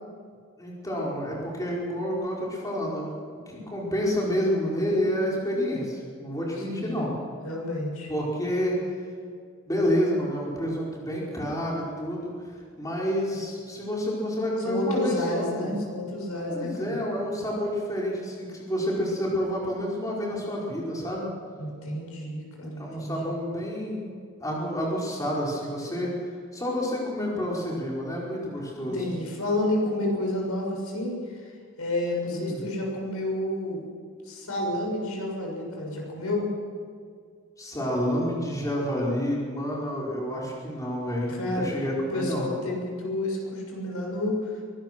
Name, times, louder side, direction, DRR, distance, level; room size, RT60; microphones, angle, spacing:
voice 1, 0.6-3.2 3.5-7.1 8.1-8.8 9.7-12.3 12.8-15.8 16.5-21.3 22.8-24.1 24.4-26.1 26.5-29.0 32.3-32.6 37.6-42.5, equal, 15° left, -4 dB, 4.9 m, -29 dB
voice 2, 6.6-7.1 7.4-8.1 14.6-17.0 21.6-23.3 28.9-31.4 31.8-33.8 34.3-36.5 41.3-41.7 42.1-44.4, left 1 dB, 90° left, 0 dB, 6.7 m, -30 dB
23.0 x 19.5 x 6.1 m, 2.1 s
head